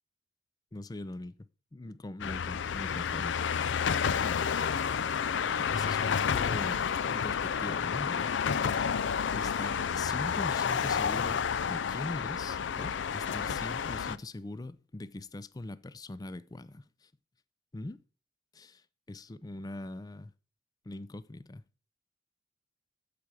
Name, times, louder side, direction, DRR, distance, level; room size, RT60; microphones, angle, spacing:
voice 1, 0.7-3.4 4.2-4.4 5.6-8.3 9.3-17.1 17.7-18.0 18.5-18.8 19.1-20.3 20.9-21.6, left 2 dB, 20° left, 0.4 m, -42 dB
sound 1, 2.2-14.2, left 7 dB, 75° left, 0.4 m, -30 dB
8.4 x 7.4 x 4.7 m
head